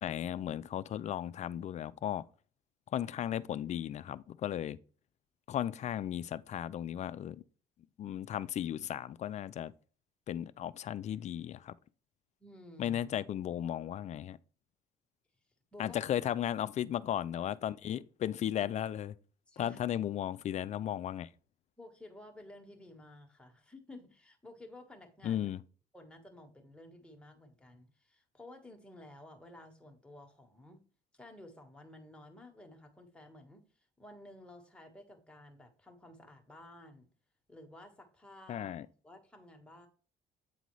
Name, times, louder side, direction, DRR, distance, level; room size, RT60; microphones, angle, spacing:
voice 1, 0.0-2.2 2.9-4.8 5.5-7.4 8.0-9.7 10.3-11.7 12.8-14.4 15.8-19.1 19.6-21.3 25.2-25.6 38.5-38.9, left 10 dB, 45° left, 0.4 m, -35 dB
voice 2, 12.4-13.0 15.7-16.0 19.5-19.8 21.8-25.4 25.9-30.8 31.1-37.1 37.5-38.8 39.0-39.9, left 1 dB, 5° left, 1.3 m, -53 dB
8.4 x 3.9 x 3.1 m
cardioid pair, 110°, 17 cm